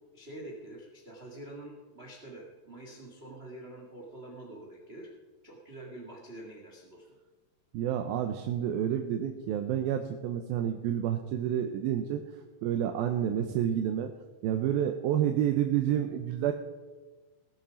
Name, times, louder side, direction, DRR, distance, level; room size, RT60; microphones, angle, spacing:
voice 1, 0.1-5.1 5.4-7.1, right 1 dB, 35° right, -1 dB, 0.9 m, -46 dB
voice 2, 7.7-12.2 12.6-14.1 14.4-16.5, right 10 dB, 85° right, 5 dB, 2.6 m, -29 dB
19.0 x 7.2 x 5.1 m, 1.3 s
omnidirectional pair, 4.1 m